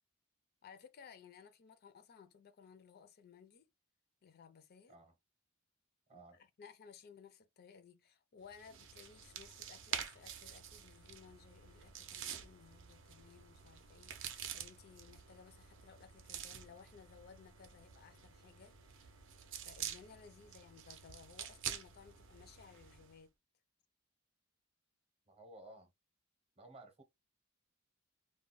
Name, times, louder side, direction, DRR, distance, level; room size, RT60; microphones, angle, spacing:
voice 1, 0.6-3.7 4.2-5.0 6.1-19.2 19.6-23.3, left 6 dB, 45° left, 0.4 m, -59 dB
voice 2, 6.1-6.4 25.3-25.9 26.6-27.0, right 2 dB, 30° right, 0.7 m, -56 dB
sound 1, 8.5-23.2, right 8 dB, 60° right, 0.5 m, -48 dB
2.2 x 2.1 x 3.8 m
head